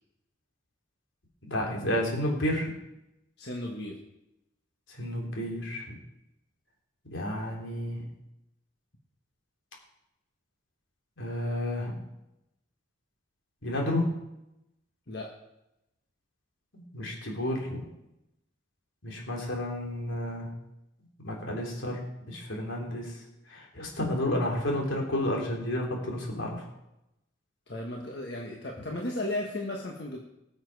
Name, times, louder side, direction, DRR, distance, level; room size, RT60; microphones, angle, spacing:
voice 1, 1.4-2.7 4.9-6.0 7.0-8.0 11.2-12.0 13.6-14.1 16.9-17.8 19.0-20.5 21.2-22.0 22.3-23.2 23.5-26.7, left 1 dB, 85° left, -1 dB, 3.5 m, -31 dB
voice 2, 3.4-4.0 15.1-15.3 27.7-30.2, left 1 dB, 55° left, -1 dB, 1.5 m, -35 dB
19.5 x 7.4 x 4.8 m, 0.88 s
head